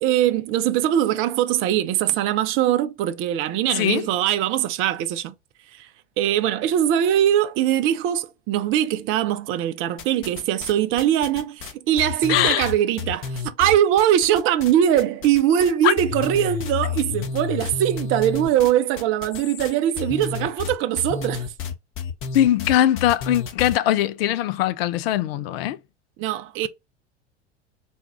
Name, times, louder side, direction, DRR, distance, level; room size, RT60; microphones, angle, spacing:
voice 1, 0.0-5.3 5.7-5.9 6.2-21.5 26.2-26.7, right 11 dB, 35° right, 0.5 m, -21 dB
voice 2, 3.7-4.1 12.3-12.7 15.8-15.9 22.3-25.8, left 12 dB, 55° left, 0.5 m, -21 dB
sound 1, 10.0-10.7 11.0-14.7 15.0-15.7 16.0-23.8, left 6 dB, 35° left, 0.9 m, -31 dB
4.2 x 2.3 x 3.5 m
figure-of-eight pair, 80°, 36 cm